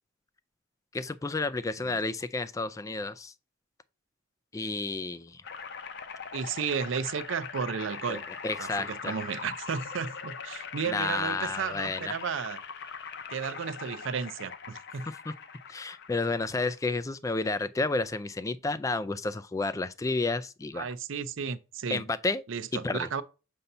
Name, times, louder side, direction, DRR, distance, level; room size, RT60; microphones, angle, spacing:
voice 1, 0.9-3.3 4.5-5.4 8.1-9.1 10.9-12.1 15.1-15.3 15.7-20.9 21.9-22.4 22.8-23.1, left 3 dB, 15° left, 0.3 m, -31 dB
sound 1, 5.4-16.8, left 6 dB, 60° left, 0.7 m, -41 dB
voice 2, 6.3-8.2 8.6-12.6 13.3-15.1 20.7-22.0 22.5-23.2, right 6 dB, 70° right, 0.5 m, -33 dB
6.9 x 2.7 x 5.4 m
head